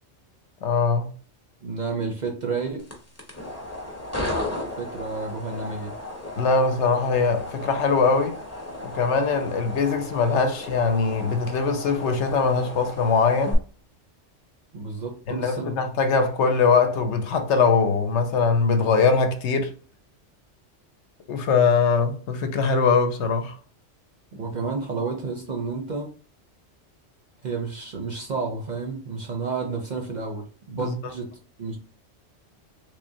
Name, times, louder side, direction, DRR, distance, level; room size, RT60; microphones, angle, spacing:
voice 1, 0.6-1.1 6.4-8.4 8.8-13.6 15.3-19.7 21.3-23.6 30.8-31.0, left 5 dB, 70° left, 0.9 m, -22 dB
voice 2, 1.6-2.9 4.8-5.9 14.7-15.8 24.3-26.2 27.4-31.8, right 4 dB, 50° right, 0.6 m, -31 dB
sound 1, 2.8-13.5, left 1 dB, 15° left, 0.7 m, -35 dB
3.6 x 3.1 x 2.7 m
omnidirectional pair, 1.2 m